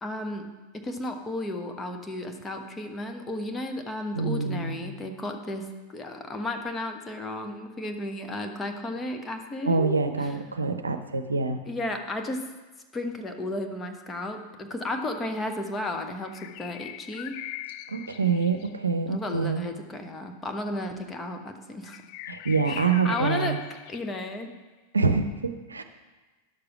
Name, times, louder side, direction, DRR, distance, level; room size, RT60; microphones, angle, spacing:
voice 1, 0.0-5.7 5.9-10.0 10.2-10.3 11.6-12.4 12.9-17.4 19.1-22.0 22.7-23.6 23.9-24.5, left 2 dB, 15° left, 4 dB, 1.1 m, -33 dB
voice 2, 4.1-4.8 9.7-11.6 17.9-19.6 22.3-23.6 24.9-25.8, right 4 dB, 75° right, 8 dB, 0.7 m, -26 dB
sound 1, 16.2-18.9 21.8-24.3, left 14 dB, 45° left, 0.3 m, -41 dB
10.5 x 6.7 x 5.8 m, 1.2 s
figure-of-eight pair, 90°, 0 cm